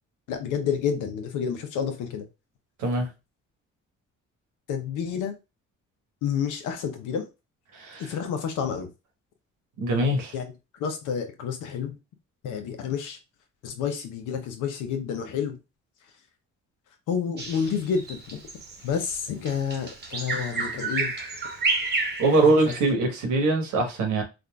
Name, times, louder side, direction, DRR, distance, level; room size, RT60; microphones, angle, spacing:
voice 1, 0.3-2.3 4.7-5.3 6.2-7.3 8.0-8.9 10.3-10.4 10.8-12.0 12.4-13.2 13.6-15.6 17.1-18.4 18.8-21.1 22.3-22.9, left 7 dB, 90° left, 0.8 m, -29 dB
voice 2, 7.7-8.0 9.8-10.3 22.2-24.2, right 2 dB, 85° right, 1.1 m, -22 dB
Bird vocalization bird call bird song, 17.4-22.9, right 3 dB, 35° right, 0.9 m, -30 dB
3.7 x 2.5 x 2.2 m
cardioid pair, 90°, 30 cm